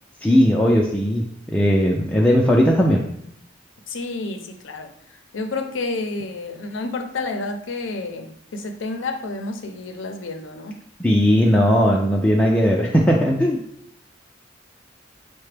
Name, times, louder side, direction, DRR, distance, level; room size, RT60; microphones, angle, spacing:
voice 1, 0.2-1.2 1.5-3.0 11.0-13.6, equal, 5° left, -3 dB, 0.3 m, -17 dB
voice 2, 3.9-4.9 5.3-10.8, left 3 dB, 90° left, 6 dB, 0.5 m, -30 dB
5.7 x 2.1 x 3.3 m, 0.72 s
head